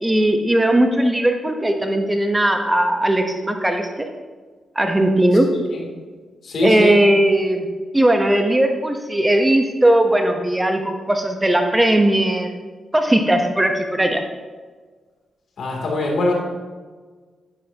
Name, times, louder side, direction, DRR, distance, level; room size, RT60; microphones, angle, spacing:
voice 1, 0.0-4.1 4.8-5.5 6.6-7.7 7.9-12.5 12.9-14.2, right 1 dB, 15° right, 5 dB, 1.1 m, -18 dB
voice 2, 5.5-5.8 6.4-7.0 15.6-16.3, left 2 dB, 70° left, -1 dB, 3.0 m, -22 dB
11.0 x 9.8 x 2.9 m, 1.4 s
cardioid pair, 70°, 0 cm